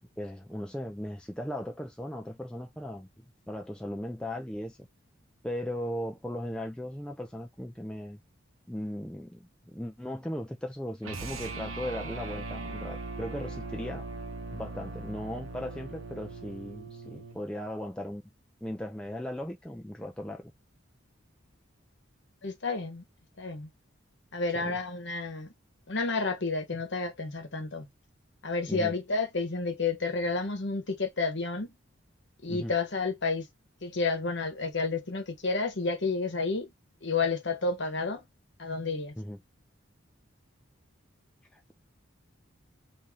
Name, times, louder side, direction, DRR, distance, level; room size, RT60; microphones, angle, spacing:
voice 1, 0.2-4.9 5.4-8.2 8.7-9.5 9.7-14.1 14.5-18.2 18.6-20.5 24.5-24.8 28.7-28.9 32.5-32.7 39.2-39.4 41.5-41.7, equal, 5° left, 0.4 m, -37 dB
sound 1, 11.0-17.4, right 3 dB, 90° right, 0.8 m, -39 dB
voice 2, 22.4-23.0 23.4-23.7 24.3-25.5 25.9-27.9 28.4-31.7 32.4-33.4 33.8-36.7 37.0-38.2 38.6-39.1, left 3 dB, 60° left, 1.1 m, -30 dB
3.2 x 2.6 x 3.6 m
head